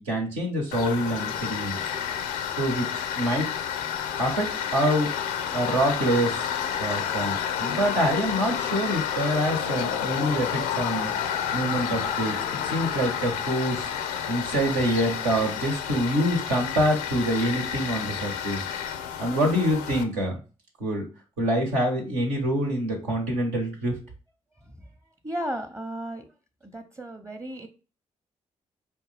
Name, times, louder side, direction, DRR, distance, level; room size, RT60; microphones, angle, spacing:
voice 1, 0.0-1.8 2.6-3.5 4.2-5.1 5.5-11.1 11.5-12.4 12.6-13.9 14.3-18.6 19.2-20.4 20.8-21.0 21.4-24.0, equal, 80° right, 0 dB, 1.1 m, -26 dB
Tools, 0.7-20.0, left 8 dB, 80° left, 0.5 m, -30 dB
voice 2, 25.2-26.3 26.6-27.7, equal, 20° right, 7 dB, 0.8 m, -35 dB
4.9 x 2.3 x 3.3 m, 0.34 s
hypercardioid pair, 40°, 16 cm